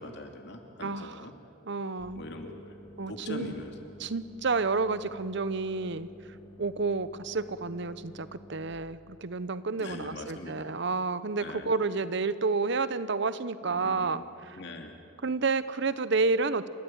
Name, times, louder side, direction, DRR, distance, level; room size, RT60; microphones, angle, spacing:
voice 1, 0.0-1.3 2.1-2.8 3.1-3.7 9.8-10.7 11.4-11.7 13.6-14.2 14.6-15.0, left 2 dB, 60° left, 3 dB, 2.7 m, -42 dB
voice 2, 0.8-1.3 1.7-2.2 3.0-3.5 4.0-6.1 6.6-14.6 15.2-16.7, right 4 dB, 60° right, 14 dB, 0.8 m, -30 dB
sound 1, 2.0-8.7, equal, 25° left, 2.1 m, -51 dB
28.5 x 14.5 x 8.9 m, 2.7 s
head